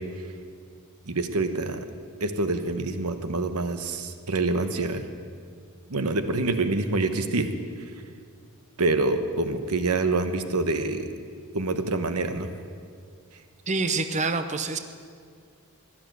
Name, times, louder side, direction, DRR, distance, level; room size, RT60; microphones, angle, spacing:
voice 1, 1.1-1.8 2.2-5.1 5.9-7.5 8.8-11.1 11.5-12.5, right 3 dB, 90° right, 9 dB, 1.1 m, -26 dB
voice 2, 13.7-14.8, right 3 dB, 30° right, 9 dB, 0.6 m, -26 dB
15.5 x 11.5 x 7.8 m, 2.1 s
head